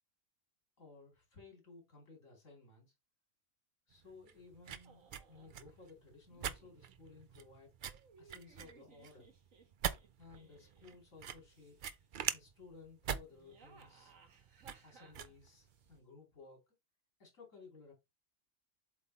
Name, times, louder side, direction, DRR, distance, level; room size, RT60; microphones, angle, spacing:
voice 1, 0.8-2.9 3.9-7.7 8.2-9.3 10.2-11.8 12.3-14.1 14.8-16.7 17.2-17.9, left 4 dB, 70° left, 3.1 m, -58 dB
sound 1, 3.9-16.0, right 8 dB, 55° right, 0.5 m, -44 dB
sound 2, 4.8-5.6 6.3-6.9 7.8-11.0 11.4-12.0 13.2-15.9, right 4 dB, 75° right, 1.7 m, -63 dB
7.6 x 3.6 x 4.1 m
omnidirectional pair, 1.4 m